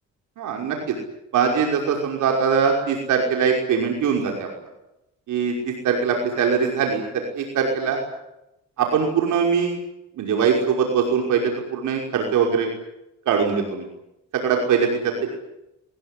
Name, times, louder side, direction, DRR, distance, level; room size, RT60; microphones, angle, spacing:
voice 1, 0.4-0.9 1.3-4.5 5.3-8.0 8.8-9.8 10.2-12.7 13.3-13.9 14.3-15.3, right 6 dB, 80° right, 1 dB, 5.7 m, -22 dB
22.0 x 21.5 x 9.9 m, 0.89 s
cardioid pair, 90°, 30 cm